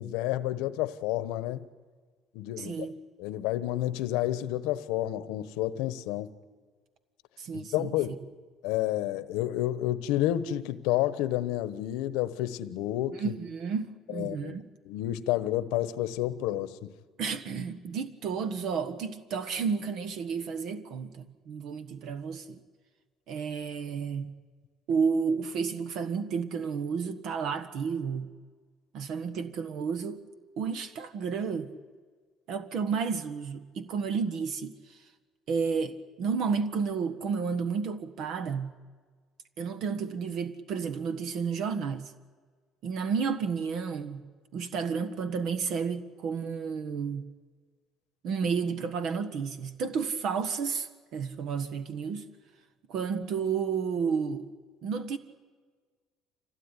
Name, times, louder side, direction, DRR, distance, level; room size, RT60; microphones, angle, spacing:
voice 1, 0.0-1.6 2.3-2.9 3.2-6.3 7.5-8.2 8.6-13.3 14.1-14.6 14.8-16.9, left 14 dB, 90° left, 1.1 m, -30 dB
voice 2, 2.6-3.0 7.4-7.9 13.1-14.6 17.2-22.6 23.3-24.3 24.9-28.3 28.9-30.2 30.6-31.7 32.5-35.0 35.5-38.7 39.6-42.1 42.8-44.2 44.5-47.2 48.2-52.3 52.9-54.5 54.8-55.2, right 6 dB, 65° right, 1.4 m, -31 dB
25.5 x 17.0 x 9.9 m
cardioid pair, 110°, 0 cm